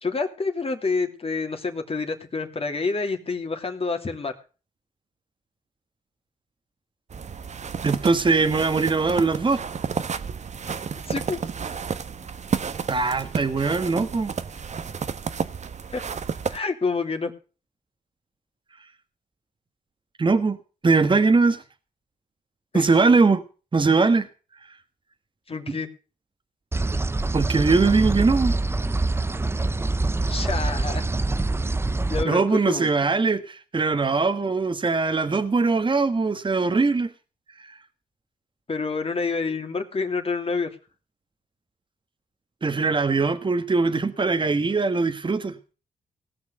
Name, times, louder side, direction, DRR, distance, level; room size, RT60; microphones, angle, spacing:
voice 1, 0.0-4.3 11.1-11.4 15.9-16.0 16.5-17.3 22.7-22.9 25.5-25.9 30.3-31.0 32.1-32.9 38.7-40.7, left 4 dB, 40° left, 2.8 m, -28 dB
sound 1, 7.1-16.6, right 6 dB, 50° right, 1.1 m, -31 dB
voice 2, 7.8-9.6 12.9-14.3 20.2-20.6 20.8-21.6 22.7-23.4 23.7-24.3 25.7-25.8 27.3-28.6 32.2-37.1 42.6-45.5, right 4 dB, 30° right, 1.5 m, -21 dB
sound 2, 26.7-32.2, right 2 dB, 15° right, 0.6 m, -25 dB
17.5 x 6.1 x 8.0 m
supercardioid pair, 60°, 16 cm